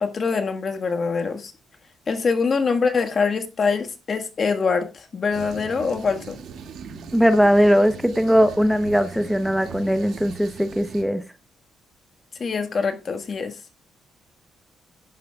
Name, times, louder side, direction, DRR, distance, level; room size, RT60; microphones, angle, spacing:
voice 1, 0.0-1.5 2.1-6.4 12.4-13.6, left 5 dB, 45° left, 1.6 m, -24 dB
sound 1, 5.3-11.0, right 6 dB, 70° right, 2.2 m, -39 dB
voice 2, 7.1-11.2, equal, ahead, 0.9 m, -19 dB
16.5 x 10.5 x 2.3 m
cardioid pair, 90°, 0 cm